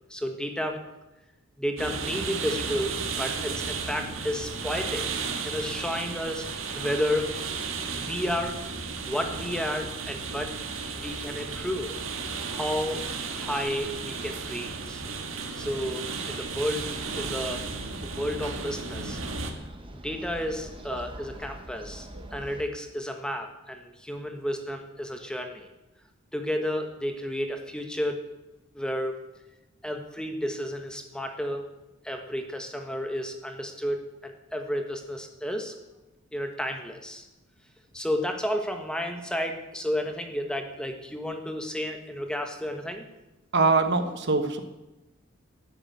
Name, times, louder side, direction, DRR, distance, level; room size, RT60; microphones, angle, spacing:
voice 1, 0.1-0.8 1.6-6.5 6.7-7.4 7.9-10.6 11.0-11.9 12.5-15.0 15.6-16.9 17.2-17.6 18.2-19.2 20.0-25.7 26.3-28.2 28.7-29.2 29.8-31.6 32.0-35.7 36.3-37.2 37.9-43.1, equal, 5° left, 5 dB, 1.3 m, -32 dB
sound 1, 1.8-19.5, right 4 dB, 90° right, 1.6 m, -34 dB
sound 2, 17.2-22.6, right 1 dB, 25° right, 1.3 m, -44 dB
voice 2, 22.1-22.5 43.5-44.6, right 3 dB, 60° right, 8 dB, 1.2 m, -25 dB
12.5 x 7.4 x 8.4 m, 1.0 s
head